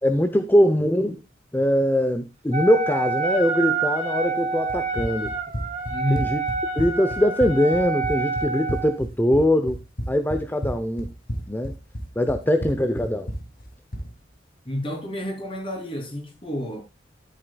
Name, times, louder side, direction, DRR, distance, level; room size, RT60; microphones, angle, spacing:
voice 1, 0.0-1.2 1.5-5.4 6.1-6.4 6.8-11.1 11.5-11.8 12.2-13.3, equal, 10° left, 0.7 m, -22 dB
Wind instrument woodwind instrument, 2.5-9.0, right 3 dB, 40° right, 3.4 m, -27 dB
Run, 4.7-14.1, equal, 50° left, 2.2 m, -32 dB
voice 2, 5.9-6.3 14.6-16.8, left 1 dB, 30° left, 3.3 m, -29 dB
13.0 x 8.7 x 2.3 m
head